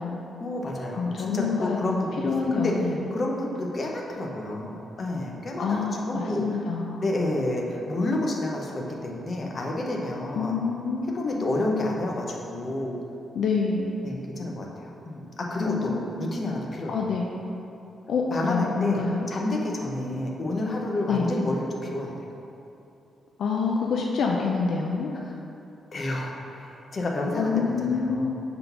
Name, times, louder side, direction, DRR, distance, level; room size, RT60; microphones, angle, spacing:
voice 1, 0.4-2.7 3.1-6.6 7.0-10.6 11.1-13.0 14.0-17.0 18.3-22.3 25.2-25.3 25.9-28.3, left 1 dB, 35° left, -1 dB, 0.8 m, -30 dB
voice 2, 0.9-3.0 5.6-7.0 10.3-11.5 13.3-13.9 15.6-16.3 16.9-17.3 18.1-19.3 21.1-21.3 23.4-25.1 27.4-28.3, left 5 dB, 65° left, 0 dB, 0.5 m, -27 dB
5.7 x 3.8 x 5.8 m, 2.8 s
wide cardioid pair, 155°, 0 cm